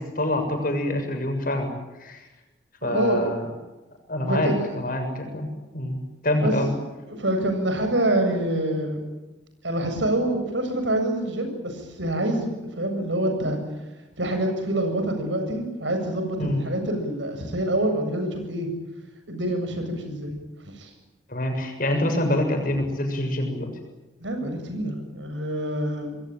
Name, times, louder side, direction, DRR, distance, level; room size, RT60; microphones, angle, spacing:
voice 1, 0.0-1.7 2.0-2.2 2.8-3.4 4.1-6.7 16.4-16.7 21.3-23.7, left 1 dB, 50° left, 4 dB, 7.1 m, -26 dB
voice 2, 2.8-3.4 4.2-4.8 6.4-6.5 7.1-9.0 9.6-13.6 14.2-18.7 19.3-20.3 20.6-20.9 24.2-26.2, right 1 dB, 85° right, 6 dB, 7.7 m, -26 dB
27.5 x 21.5 x 9.1 m, 1.1 s
head